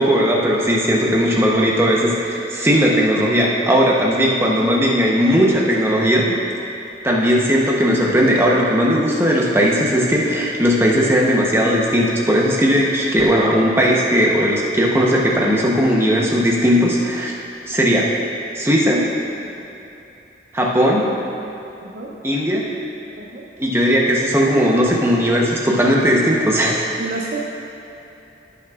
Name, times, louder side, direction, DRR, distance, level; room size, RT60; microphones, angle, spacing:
voice 1, 0.0-6.4 7.0-17.3 17.7-18.1 18.5-19.1 20.5-21.1 22.2-22.6 23.6-26.8, equal, 15° right, -3 dB, 0.9 m, -17 dB
voice 2, 21.8-22.1 23.2-23.4 27.0-27.4, right 3 dB, 50° right, -3 dB, 0.6 m, -29 dB
16.0 x 6.0 x 2.4 m, 2.8 s
head